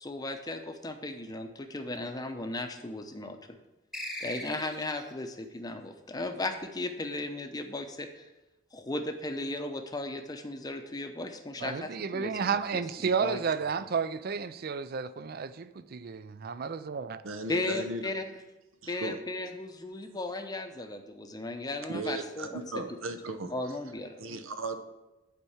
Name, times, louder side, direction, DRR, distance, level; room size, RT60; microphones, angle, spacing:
voice 1, 0.0-3.4 4.2-8.3 8.7-13.4 17.5-18.2 18.9-22.6 23.5-24.2, left 2 dB, 20° left, 0.7 m, -36 dB
sound 1, 3.9-5.1, left 1 dB, ahead, 1.0 m, -39 dB
voice 2, 11.6-17.2, right 6 dB, 45° right, 0.4 m, -32 dB
voice 3, 17.2-18.1 18.8-19.2 21.9-23.5 24.2-24.8, right 2 dB, 80° right, 0.8 m, -36 dB
8.4 x 4.5 x 7.1 m
head